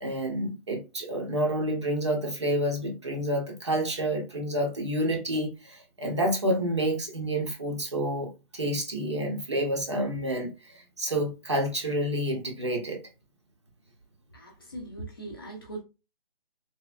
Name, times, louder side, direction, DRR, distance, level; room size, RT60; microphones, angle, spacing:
voice 1, 0.0-13.0, right 1 dB, 30° right, 0.7 m, -29 dB
voice 2, 14.3-15.8, right 2 dB, 25° left, 0.7 m, -40 dB
3.4 x 3.0 x 2.6 m
hypercardioid pair, 170°, 30 cm